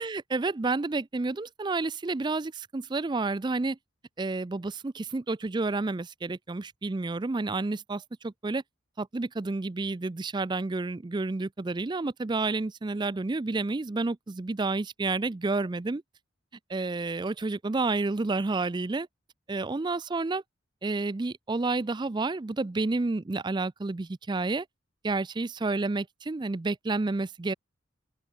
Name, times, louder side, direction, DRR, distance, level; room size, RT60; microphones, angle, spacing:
voice 1, 0.0-3.8 4.2-8.6 9.0-16.0 16.7-19.1 19.5-20.4 20.8-24.7 25.0-27.5, right 3 dB, 20° right, 0.4 m, -30 dB
open air
head